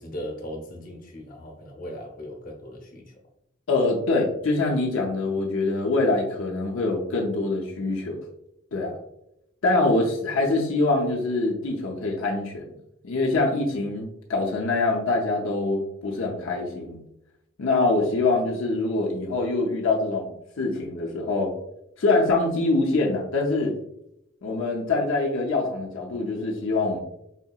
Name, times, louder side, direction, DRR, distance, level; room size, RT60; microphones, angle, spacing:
voice 1, 0.0-3.2, equal, 45° left, 0 dB, 0.8 m, -38 dB
voice 2, 3.7-8.2 8.7-9.0 9.6-12.6 13.0-17.0 17.6-21.5 22.0-23.7 24.4-27.0, left 2 dB, 80° left, -1 dB, 0.6 m, -24 dB
4.2 x 2.8 x 2.3 m, 0.81 s
head